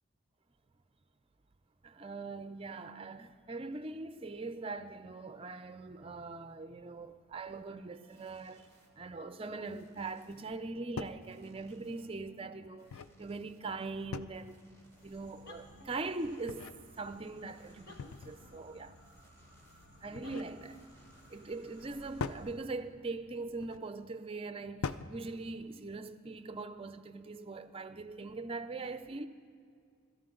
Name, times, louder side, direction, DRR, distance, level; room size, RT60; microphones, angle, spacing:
voice 1, 1.8-8.7 9.0-14.7 15.0-16.7 17.0-19.0 20.0-20.8 21.3-29.3, right 3 dB, 25° right, 0.5 m, -42 dB
sound 1, 7.3-22.0, left 1 dB, 15° left, 1.7 m, -67 dB
sound 2, 10.5-10.6 11.0-11.3 12.6-13.2 14.1-14.6 16.2-16.8 18.0-18.5 19.9-20.5 22.2-22.5 23.5-23.8 24.8-25.2, left 5 dB, 75° left, 0.4 m, -41 dB
sound 3, 14.8-22.7, left 1 dB, 45° left, 1.6 m, -57 dB
25.0 x 13.0 x 3.8 m
head